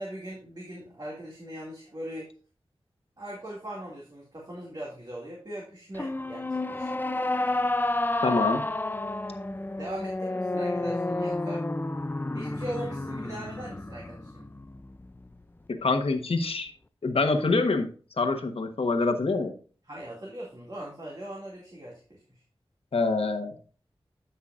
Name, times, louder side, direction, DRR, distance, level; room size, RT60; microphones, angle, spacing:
voice 1, 0.0-2.3 3.2-7.0 9.4-9.5 9.8-11.6 12.3-14.5 19.9-22.4, right 1 dB, 45° right, -3 dB, 2.3 m, -40 dB
sound 1, 5.9-15.3, left 2 dB, 20° left, 0.5 m, -30 dB
voice 2, 8.2-8.6 15.7-16.7 17.0-17.9 18.2-19.5 22.9-23.6, left 3 dB, 75° left, 6 dB, 1.2 m, -25 dB
13.0 x 5.7 x 2.5 m, 0.39 s
wide cardioid pair, 60°, 10 cm